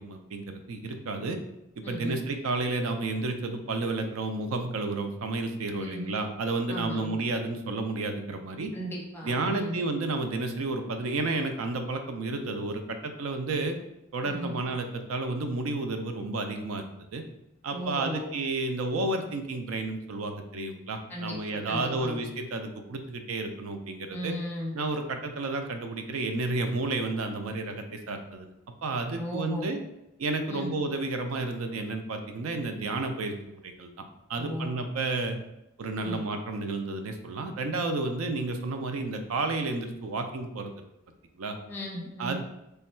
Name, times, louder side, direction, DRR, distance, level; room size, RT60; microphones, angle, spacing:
voice 1, 0.0-1.4 1.8-8.7 9.2-13.7 14.1-17.2 17.6-24.3 24.7-28.5 28.8-29.8 30.2-33.9 34.3-35.4 35.8-40.7 41.4-41.6 42.2-42.4, right 3 dB, 85° right, 6 dB, 0.4 m, -31 dB
voice 2, 1.8-2.2 5.7-6.1 6.7-7.1 8.7-9.8 14.2-14.6 17.7-18.3 21.1-22.2 24.1-24.7 29.2-29.7 30.5-30.7 34.4-34.7 36.0-36.2 41.7-42.4, equal, 10° left, -3 dB, 0.8 m, -36 dB
3.4 x 2.2 x 4.2 m, 0.88 s
head